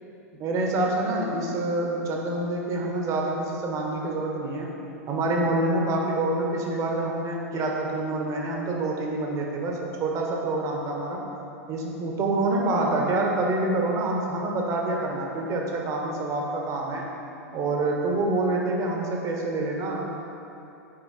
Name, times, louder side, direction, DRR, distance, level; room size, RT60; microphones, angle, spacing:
voice 1, 0.3-4.7 5.1-11.2 11.7-17.1 17.5-20.2, right 2 dB, 40° right, -1 dB, 1.3 m, -27 dB
8.9 x 4.3 x 4.3 m, 2.9 s
hypercardioid pair, 100°, 9 cm